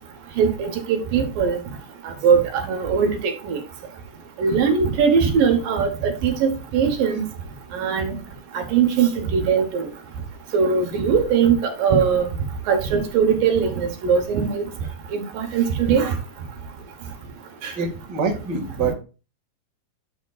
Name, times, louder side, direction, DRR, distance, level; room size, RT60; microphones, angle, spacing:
voice 1, 0.4-1.6 2.0-3.6 4.4-7.2 7.7-8.1 8.5-9.9 10.5-12.3 12.7-14.6 15.1-16.1 17.6-17.7, right 6 dB, 75° right, 5 dB, 2.8 m, -20 dB
voice 2, 17.8-18.9, right 4 dB, 35° right, 0 dB, 2.0 m, -25 dB
11.0 x 7.2 x 2.4 m, 0.33 s
omnidirectional pair, 4.1 m